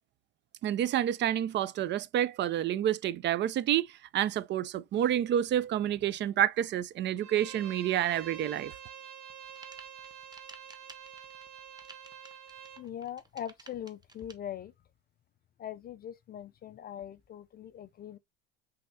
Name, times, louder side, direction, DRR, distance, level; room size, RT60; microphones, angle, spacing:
voice 1, 0.6-3.9 4.1-8.7, right 11 dB, 35° right, 0.4 m, -29 dB
Bowed string instrument, 7.2-12.8, right 8 dB, 65° right, 1.1 m, -47 dB
sound 1, 9.3-14.3, right 3 dB, 15° right, 0.9 m, -53 dB
voice 2, 12.8-14.7 15.6-18.2, left 10 dB, 30° left, 0.4 m, -41 dB
5.3 x 3.4 x 2.6 m
supercardioid pair, 95°, 32 cm